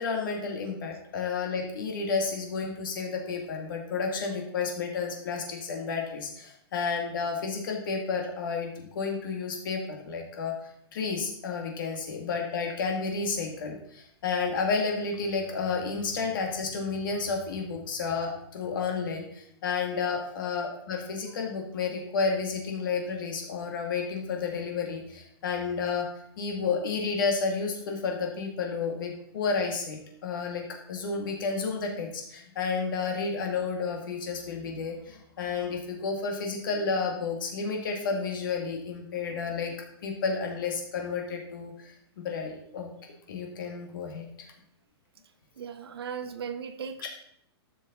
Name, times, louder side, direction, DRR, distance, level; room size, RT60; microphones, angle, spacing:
voice 1, 0.0-26.1 26.4-39.7 40.0-42.9 43.3-44.5 47.0-47.1, left 5 dB, 55° left, 2 dB, 2.0 m, -31 dB
voice 2, 45.6-47.1, right 7 dB, 75° right, 10 dB, 1.1 m, -37 dB
12.0 x 7.2 x 4.0 m, 0.69 s
hypercardioid pair, 170°, 13 cm